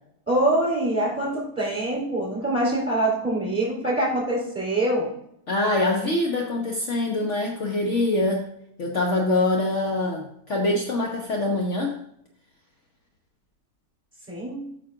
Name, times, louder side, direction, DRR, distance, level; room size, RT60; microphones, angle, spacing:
voice 1, 0.3-5.1 14.3-14.7, right 1 dB, 10° right, -4 dB, 4.0 m, -24 dB
voice 2, 5.5-8.5 8.8-11.9, left 2 dB, 50° left, 0 dB, 1.3 m, -24 dB
9.2 x 6.1 x 3.8 m, 0.72 s
omnidirectional pair, 1.6 m